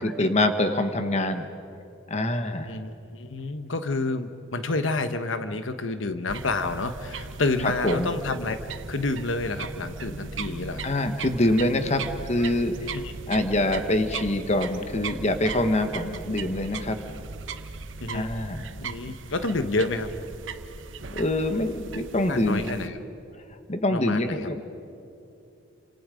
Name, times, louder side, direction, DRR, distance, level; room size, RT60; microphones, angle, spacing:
voice 1, 0.0-1.5 2.1-2.7 7.8-8.1 10.8-13.0 13.3-17.0 18.1-18.6 21.1-22.7 23.7-24.6, left 1 dB, 35° left, 8 dB, 1.3 m, -25 dB
voice 2, 2.6-8.6 8.9-10.9 12.9-13.1 18.0-18.3 18.8-20.1 22.3-23.0 23.9-24.5, left 3 dB, 90° left, 9 dB, 1.1 m, -29 dB
sound 1, 6.3-22.9, right 4 dB, 85° right, 1.0 m, -38 dB
29.5 x 26.5 x 5.2 m, 2.7 s
head